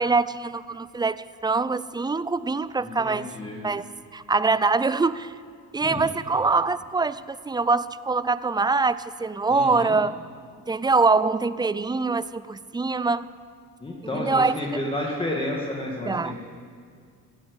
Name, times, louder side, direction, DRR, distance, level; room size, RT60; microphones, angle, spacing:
voice 1, 0.0-3.3 3.6-3.9 4.1-5.3 5.7-10.2 10.7-13.3 14.1-14.8 16.1-16.3, right 4 dB, 15° right, 16 dB, 0.4 m, -24 dB
voice 2, 2.8-3.6 5.8-6.0 9.5-10.0 13.8-16.3, left 1 dB, 15° left, -2 dB, 2.2 m, -31 dB
16.0 x 9.9 x 8.2 m, 2.2 s
cardioid pair, 90°, 30 cm